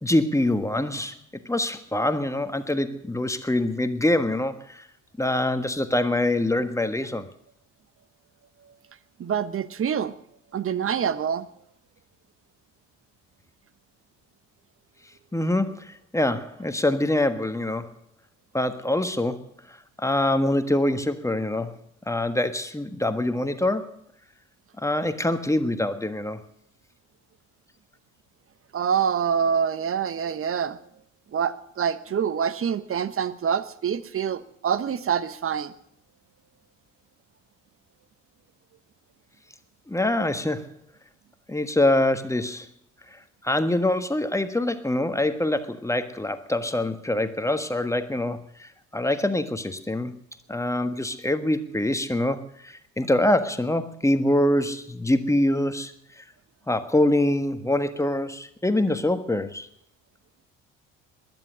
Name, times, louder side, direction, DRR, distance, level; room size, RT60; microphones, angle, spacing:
voice 1, 0.0-1.2 1.4-4.9 5.2-7.3 15.3-17.9 18.5-21.7 22.1-24.0 24.8-26.4 39.9-40.7 41.5-42.7 43.4-50.2 50.5-56.2 56.7-59.7, left 1 dB, 10° left, 9 dB, 1.4 m, -25 dB
voice 2, 9.2-10.1 10.5-11.5 28.7-30.8 31.3-35.7, right 7 dB, 35° right, 15 dB, 1.1 m, -26 dB
20.5 x 11.0 x 6.3 m, 0.71 s
figure-of-eight pair, 55°, 39 cm